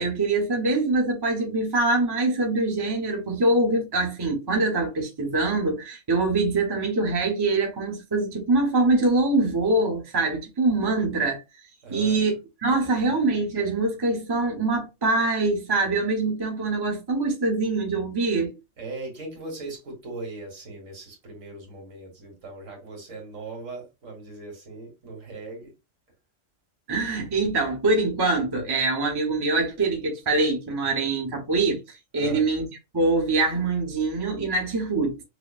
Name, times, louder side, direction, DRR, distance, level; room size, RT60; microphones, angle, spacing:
voice 1, 0.0-11.4 11.9-12.3 12.6-18.6 26.9-32.6 32.9-35.2, right 3 dB, 20° right, 0.8 m, -24 dB
voice 2, 11.8-12.3 12.8-13.1 18.8-25.7 32.1-32.5, right 3 dB, 65° right, 1.9 m, -39 dB
5.9 x 2.0 x 2.3 m
omnidirectional pair, 1.4 m